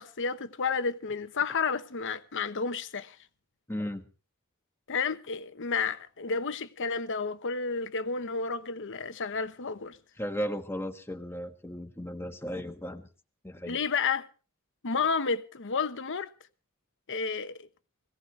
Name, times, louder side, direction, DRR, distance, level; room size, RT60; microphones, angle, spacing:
voice 1, 0.0-3.2 4.9-10.0 13.7-14.3 14.8-16.3 17.1-17.7, left 5 dB, 60° left, 1.0 m, -31 dB
voice 2, 3.7-4.1 10.2-13.1 13.4-13.8, equal, 10° left, 1.3 m, -35 dB
21.5 x 16.5 x 3.3 m
head